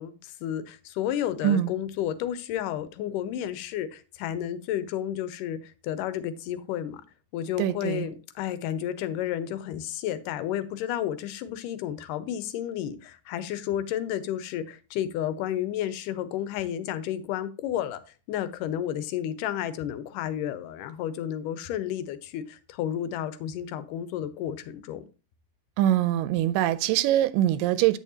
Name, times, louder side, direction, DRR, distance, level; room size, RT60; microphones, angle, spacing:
voice 1, 0.0-7.0 7.3-18.0 18.3-25.1, left 11 dB, 85° left, 2.2 m, -31 dB
voice 2, 7.6-8.1 25.8-28.0, right 12 dB, 90° right, 2.3 m, -23 dB
8.3 x 7.2 x 2.8 m
omnidirectional pair, 3.8 m